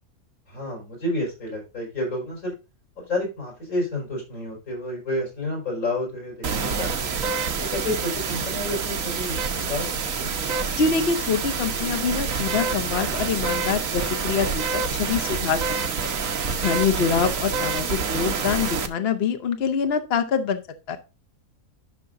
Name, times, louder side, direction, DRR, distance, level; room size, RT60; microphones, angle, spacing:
voice 1, 0.5-2.5 3.0-7.2 7.7-9.4 9.7-10.3 17.1-17.3, left 1 dB, 85° left, -1 dB, 5.6 m, -30 dB
sound 1, 6.4-18.9, right 5 dB, 70° right, 1.4 m, -27 dB
voice 2, 10.8-15.6 15.9-16.1 16.6-20.6 20.9-21.0, left 6 dB, 50° left, 8 dB, 1.0 m, -25 dB
11.5 x 6.1 x 2.5 m, 0.28 s
omnidirectional pair, 1.5 m